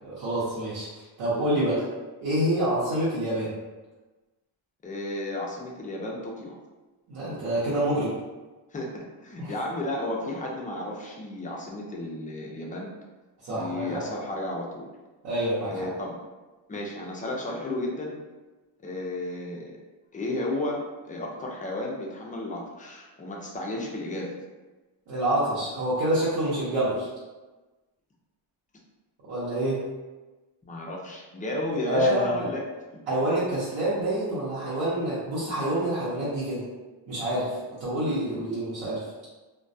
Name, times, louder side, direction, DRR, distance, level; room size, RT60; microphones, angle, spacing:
voice 1, 0.0-1.9 2.2-3.5 7.1-8.1 9.4-9.5 13.4-14.0 15.2-15.9 25.1-27.1 29.3-29.9 31.8-32.5 33.1-36.7 37.1-39.0, right 1 dB, 65° right, -11 dB, 0.9 m, -27 dB
voice 2, 4.8-6.5 8.7-12.9 13.5-14.9 15.7-16.2 16.7-18.2 18.8-19.7 20.1-20.8 21.0-24.3 30.6-32.6, left 1 dB, 20° left, -2 dB, 0.4 m, -33 dB
2.2 x 2.2 x 2.6 m, 1.2 s
cardioid pair, 105°, 49 cm